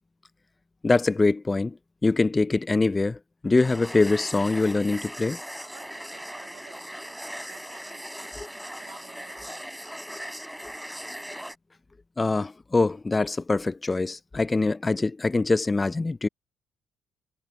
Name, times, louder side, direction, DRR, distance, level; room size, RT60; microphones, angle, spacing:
voice 1, 0.8-1.8 2.0-3.2 3.4-5.4 8.4-8.5 12.2-16.3, left 3 dB, 20° left, 0.5 m, -23 dB
sound 1, 3.6-11.6, equal, ahead, 4.3 m, -39 dB
voice 2, 5.6-9.7, right 11 dB, 75° right, 7.6 m, -53 dB
cardioid pair, 90°, 0 cm